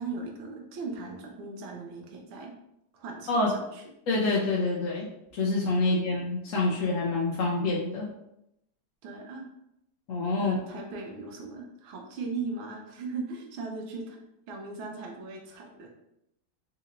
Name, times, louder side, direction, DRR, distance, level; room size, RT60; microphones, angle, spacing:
voice 1, 0.0-2.5 2.9-3.8 6.0-6.2 9.0-9.5 10.4-14.2 14.5-15.9, right 4 dB, 90° right, 1 dB, 1.5 m, -38 dB
voice 2, 4.1-5.1 5.3-8.1 10.1-10.6, left 3 dB, 80° left, -5 dB, 0.7 m, -26 dB
4.1 x 2.8 x 2.5 m, 0.81 s
omnidirectional pair, 2.1 m